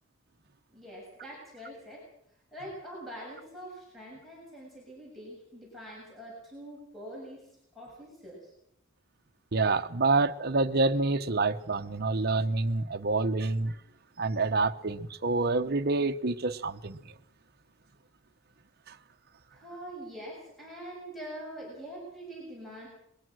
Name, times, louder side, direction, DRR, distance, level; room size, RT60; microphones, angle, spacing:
voice 1, 0.7-2.1 2.5-8.5 19.5-22.9, right 1 dB, ahead, 6.9 m, -44 dB
voice 2, 9.5-13.7 14.2-17.0 18.9-19.0, right 3 dB, 50° right, 1.0 m, -27 dB
22.0 x 21.0 x 6.3 m
head